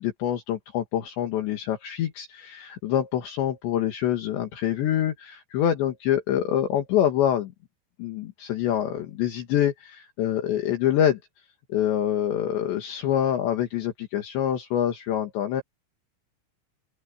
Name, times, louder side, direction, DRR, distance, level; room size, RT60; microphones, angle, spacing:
voice 1, 0.0-7.5 8.0-11.2 11.7-15.6, left 10 dB, 65° left, 4.0 m, -26 dB
open air
omnidirectional pair, 5.7 m